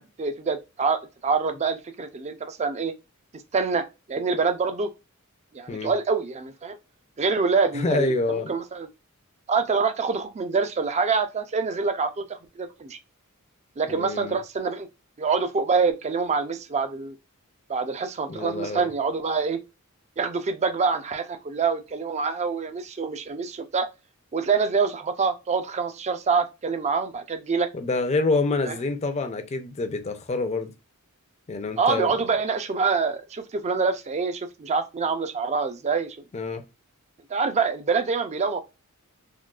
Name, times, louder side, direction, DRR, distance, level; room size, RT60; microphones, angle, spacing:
voice 1, 0.0-2.9 3.5-4.9 5.5-6.8 7.2-8.1 8.5-8.9 9.5-13.0 13.8-14.9 15.2-17.2 17.7-19.6 20.2-23.9 24.3-27.7 28.7-28.8 31.8-36.2 37.3-38.6, right 5 dB, 30° right, 0.4 m, -26 dB
voice 2, 7.7-8.5 13.9-14.4 18.3-18.9 27.7-30.7 31.5-32.2 36.3-36.6, left 3 dB, 30° left, 0.5 m, -27 dB
3.7 x 2.3 x 2.3 m
head